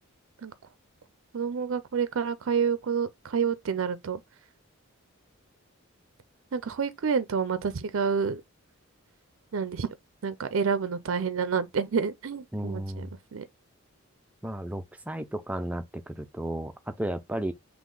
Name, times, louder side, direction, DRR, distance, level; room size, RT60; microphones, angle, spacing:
voice 1, 1.3-4.2 6.5-8.4 9.5-9.9 10.2-13.4, right 6 dB, 65° right, 0.4 m, -28 dB
voice 2, 12.5-13.1 14.4-17.5, right 1 dB, 5° right, 0.3 m, -33 dB
3.7 x 2.9 x 3.7 m
head